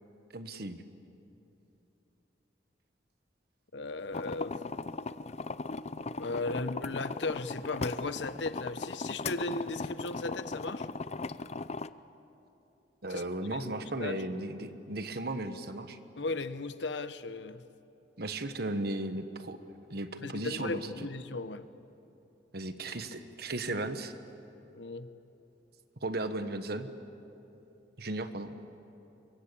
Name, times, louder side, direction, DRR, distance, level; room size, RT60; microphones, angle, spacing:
voice 1, 0.3-0.8 13.0-16.0 18.2-19.6 19.9-21.1 22.5-24.1 26.0-26.9 28.0-28.5, right 2 dB, 60° right, 1.3 m, -36 dB
voice 2, 3.7-4.6 6.2-10.9 13.1-13.2 13.5-14.2 16.2-17.6 20.2-21.6 24.7-25.1, left 3 dB, 90° left, 1.0 m, -36 dB
sound 1, 4.1-11.9, left 3 dB, 40° left, 0.5 m, -38 dB
24.5 x 22.0 x 8.6 m
head